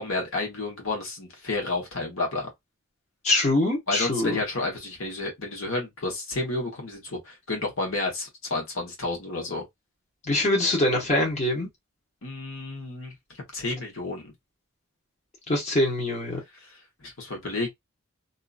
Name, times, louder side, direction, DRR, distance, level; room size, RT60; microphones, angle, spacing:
voice 1, 0.0-2.5 3.9-9.6 12.2-13.1 13.5-14.3 17.0-17.7, left 2 dB, 75° left, 1.3 m, -31 dB
voice 2, 3.2-4.4 10.3-11.7 15.5-16.4, left 1 dB, 35° left, 1.1 m, -23 dB
2.8 x 2.5 x 2.4 m
head